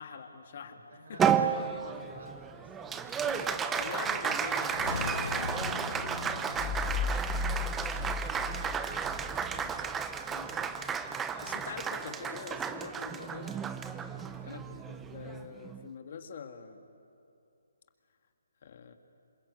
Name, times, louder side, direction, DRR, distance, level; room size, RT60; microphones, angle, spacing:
voice 1, 0.0-1.7 3.2-4.9 9.5-9.9 10.3-10.7 11.4-13.6 14.4-16.9 18.6-18.9, left 6 dB, 50° left, 6 dB, 2.0 m, -44 dB
voice 2, 0.6-3.4 5.6-9.1 14.0-14.4, right 2 dB, 60° right, 3 dB, 6.3 m, -53 dB
Applause, 1.2-15.8, right 7 dB, 10° right, 0.8 m, -33 dB
sound 1, 4.6-9.0, left 5 dB, 65° left, 1.4 m, -40 dB
sound 2, 6.6-9.9, left 4 dB, 15° left, 1.7 m, -35 dB
27.5 x 21.0 x 8.4 m, 2.6 s
hypercardioid pair, 150°, 0 cm